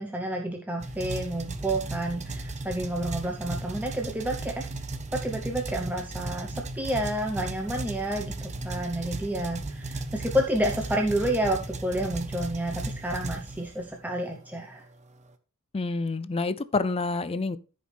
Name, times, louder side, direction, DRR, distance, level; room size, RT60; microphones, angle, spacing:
voice 1, 0.0-4.7 5.1-14.8, right 1 dB, 10° right, 0.9 m, -30 dB
sound 1, 0.8-14.0, right 2 dB, 30° right, 1.0 m, -36 dB
voice 2, 15.7-17.6, left 3 dB, 25° left, 0.4 m, -28 dB
14.0 x 5.2 x 3.4 m
head